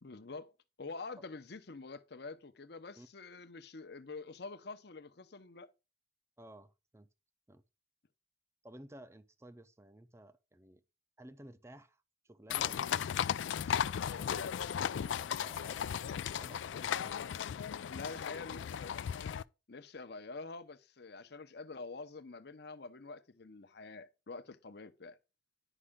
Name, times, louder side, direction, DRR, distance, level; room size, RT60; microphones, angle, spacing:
voice 1, 0.0-0.5 0.8-5.7 17.9-19.0 19.7-25.2, left 3 dB, 60° left, 0.8 m, -46 dB
voice 2, 6.4-7.1 7.5-7.6 8.6-10.8 11.2-17.4, right 1 dB, 15° right, 0.6 m, -56 dB
sound 1, 12.5-19.4, left 8 dB, 85° left, 0.3 m, -36 dB
10.0 x 5.5 x 3.6 m
head